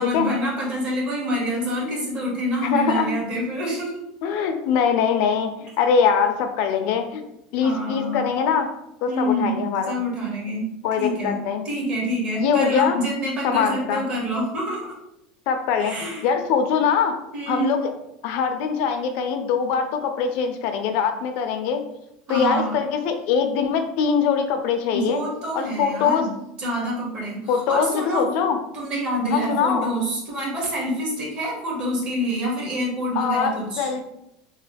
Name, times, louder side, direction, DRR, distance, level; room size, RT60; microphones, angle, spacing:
voice 1, 0.0-4.0 7.6-8.2 9.1-9.6 9.9-10.7 11.0-11.4 11.6-15.0 15.8-16.3 17.3-17.7 22.3-22.8 24.9-26.3 26.6-28.3 28.7-33.9, equal, 35° right, -3 dB, 1.1 m, -27 dB
voice 2, 2.6-3.1 4.2-7.2 7.5-8.7 9.0-9.9 10.8-11.6 12.4-13.0 13.4-14.1 15.5-17.1 17.5-17.9 18.2-21.8 22.3-25.2 25.5-26.3 27.5-28.6 29.3-29.9 33.2-34.0, left 6 dB, 55° left, 6 dB, 0.4 m, -22 dB
3.0 x 2.0 x 3.3 m, 0.82 s
supercardioid pair, 160°, 3 cm